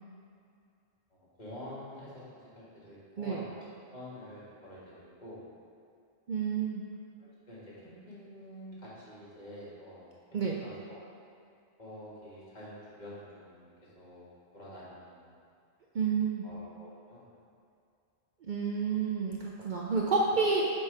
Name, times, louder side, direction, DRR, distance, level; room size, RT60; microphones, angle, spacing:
voice 1, 1.1-3.5 3.9-5.4 7.2-10.1 10.5-11.0 11.8-15.4 16.4-17.3, left 1 dB, 40° left, -8 dB, 1.7 m, -48 dB
voice 2, 3.2-3.5 6.3-6.8 10.3-10.6 15.9-16.5 18.5-20.6, right 5 dB, 55° right, -3 dB, 0.6 m, -29 dB
7.3 x 3.3 x 4.7 m, 2.4 s
omnidirectional pair, 1.1 m